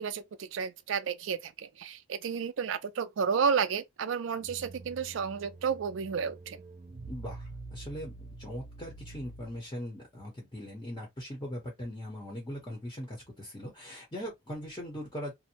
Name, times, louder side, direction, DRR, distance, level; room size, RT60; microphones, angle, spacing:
voice 1, 0.0-6.6, right 6 dB, 65° right, 0.4 m, -32 dB
sound 1, 4.4-9.8, right 3 dB, 35° right, 0.7 m, -47 dB
voice 2, 7.1-15.3, equal, 20° left, 0.8 m, -40 dB
2.6 x 2.0 x 2.8 m
head